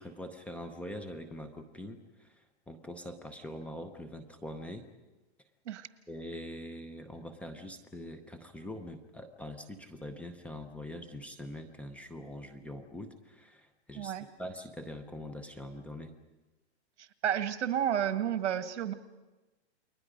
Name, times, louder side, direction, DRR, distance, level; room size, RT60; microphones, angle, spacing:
voice 1, 0.0-4.9 6.1-16.1, left 1 dB, 5° left, 7 dB, 0.7 m, -43 dB
voice 2, 14.0-14.3 17.0-18.9, right 9 dB, 80° right, 11 dB, 1.6 m, -31 dB
29.5 x 22.0 x 5.1 m, 1.1 s
hypercardioid pair, 155°, 35 cm